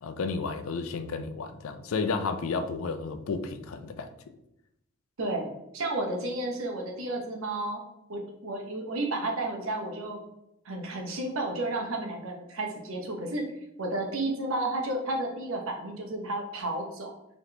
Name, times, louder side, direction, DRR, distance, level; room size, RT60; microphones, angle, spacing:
voice 1, 0.0-4.1, left 4 dB, 90° left, 0.4 m, -32 dB
voice 2, 5.2-7.8 8.1-10.2 10.6-13.5 13.8-17.1, right 2 dB, 85° right, 0.9 m, -32 dB
4.0 x 3.0 x 3.2 m
head